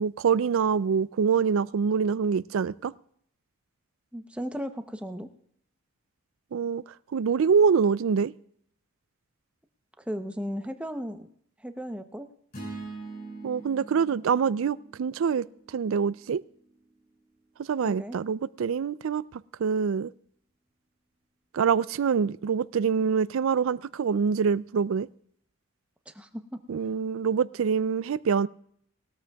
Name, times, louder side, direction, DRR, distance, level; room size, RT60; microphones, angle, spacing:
voice 1, 0.0-2.9 6.5-6.8 7.1-8.3 13.4-15.5 15.7-16.4 17.6-20.1 21.5-25.1 26.7-28.5, right 6 dB, 70° right, 0.4 m, -25 dB
voice 2, 4.1-5.3 10.1-11.3 11.6-12.3 17.8-18.2 26.1-26.6, equal, 5° right, 0.7 m, -35 dB
sound 1, 12.5-16.8, right 3 dB, 45° left, 5.8 m, -43 dB
20.0 x 13.5 x 2.3 m
head